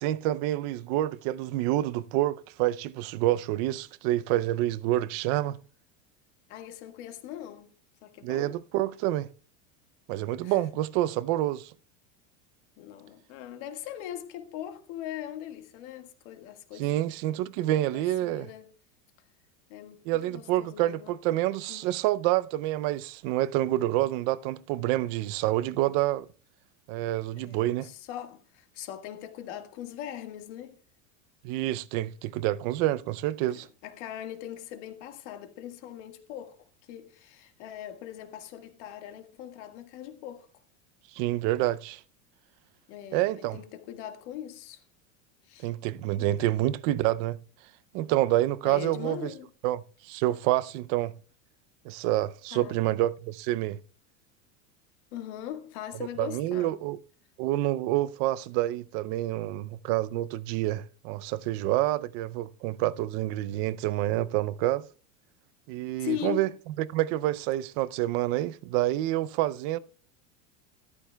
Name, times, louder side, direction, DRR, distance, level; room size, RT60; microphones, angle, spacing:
voice 1, 0.0-5.6 8.2-9.3 10.1-11.7 16.8-18.5 20.1-26.3 26.9-27.9 31.4-33.7 41.1-42.0 43.1-43.6 45.6-47.4 47.9-49.3 49.6-51.1 51.8-53.8 56.2-57.0 57.4-64.8 65.7-66.5 66.8-69.8, right 15 dB, 50° right, 0.5 m, -28 dB
voice 2, 6.5-7.7 8.0-8.6 10.4-10.6 12.8-16.9 17.7-18.7 19.7-21.1 21.7-21.9 27.4-30.8 33.5-36.6 36.9-40.5 42.9-44.8 45.4-45.7 46.2-46.5 48.6-49.5 52.5-52.8 55.1-56.8 66.0-66.5, left 11 dB, 60° left, 1.7 m, -40 dB
13.5 x 12.5 x 2.2 m
supercardioid pair, 140°, 39 cm